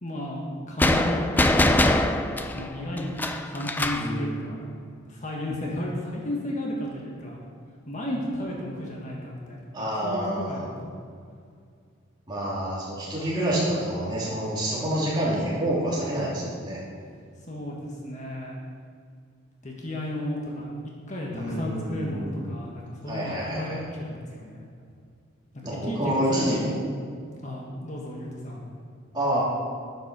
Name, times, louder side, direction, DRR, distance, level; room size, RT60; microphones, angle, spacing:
voice 1, 0.0-1.6 2.5-3.1 3.5-4.7 5.1-7.4 7.8-9.7 10.0-10.9 17.5-18.6 19.6-20.7 21.1-24.6 25.6-26.9 27.4-28.6, left 1 dB, 35° left, -2 dB, 1.5 m, -33 dB
sound 1, 0.8-4.1, left 1 dB, 10° left, 0.3 m, -23 dB
voice 2, 3.9-4.3 9.7-10.7 12.3-16.8 21.3-22.6 23.1-23.8 25.6-26.6 29.1-29.4, right 1 dB, 20° right, -7 dB, 3.1 m, -28 dB
9.9 x 7.8 x 6.2 m, 2.2 s
head